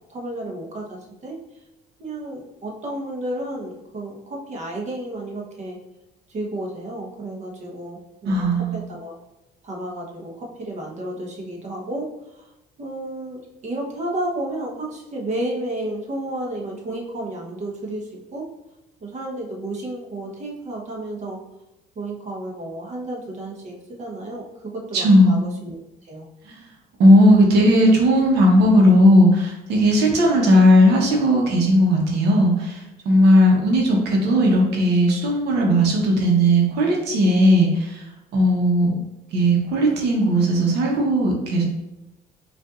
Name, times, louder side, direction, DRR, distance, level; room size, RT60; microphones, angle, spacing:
voice 1, 0.0-1.4 2.0-5.8 6.3-9.1 9.6-12.5 12.8-18.4 19.0-21.4 21.9-26.3, right 1 dB, 45° right, -1 dB, 1.0 m, -32 dB
voice 2, 8.2-8.8 24.9-25.4 26.5-26.6 27.0-38.0 38.3-38.9 39.3-41.6, equal, 75° right, -1 dB, 1.0 m, -16 dB
5.2 x 2.6 x 2.5 m, 0.93 s
cardioid pair, 110°, 17 cm